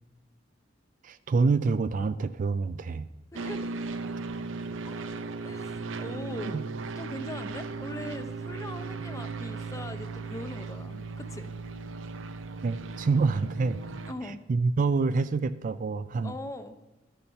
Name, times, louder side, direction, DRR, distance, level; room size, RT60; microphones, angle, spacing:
voice 1, 1.0-3.1 6.5-6.6 12.6-13.8 14.5-16.3, right 4 dB, 45° right, 13 dB, 0.3 m, -26 dB
voice 2, 3.3-3.8 4.9-5.0 5.4-6.6 7.0-11.5 14.1-14.4 16.2-16.8, left 1 dB, 15° left, 9 dB, 0.6 m, -41 dB
sound 1, 3.3-14.1, right 4 dB, 85° right, 0.6 m, -37 dB
12.0 x 7.0 x 5.5 m, 1.0 s
head